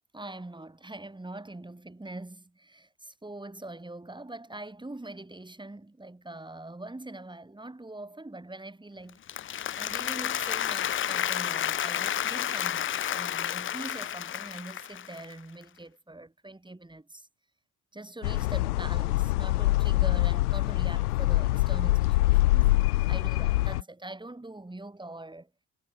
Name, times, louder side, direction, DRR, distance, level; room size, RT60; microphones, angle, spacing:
voice 1, 0.1-17.3 17.9-22.8 23.1-25.5, right 2 dB, 10° right, 4.0 m, -43 dB
Applause, 9.1-15.3, left 10 dB, 25° left, 0.6 m, -31 dB
sound 1, 18.2-23.8, left 18 dB, 75° left, 0.9 m, -24 dB
figure-of-eight pair, 55°, 46 cm